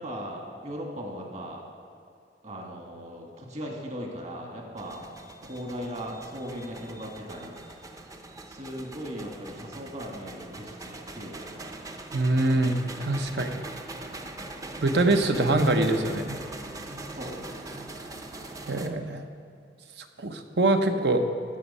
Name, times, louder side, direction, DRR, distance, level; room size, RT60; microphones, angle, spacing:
voice 1, 0.0-1.6 2.4-5.0 5.4-8.1 8.5-11.9 17.1-17.7, equal, 40° right, 0 dB, 1.7 m, -38 dB
sound 1, 4.8-18.9, right 2 dB, 20° right, 0.6 m, -42 dB
voice 2, 12.1-13.5 14.8-16.4 18.7-19.2 20.2-21.2, right 2 dB, 70° right, 6 dB, 0.8 m, -24 dB
16.0 x 6.3 x 5.5 m, 2.4 s
head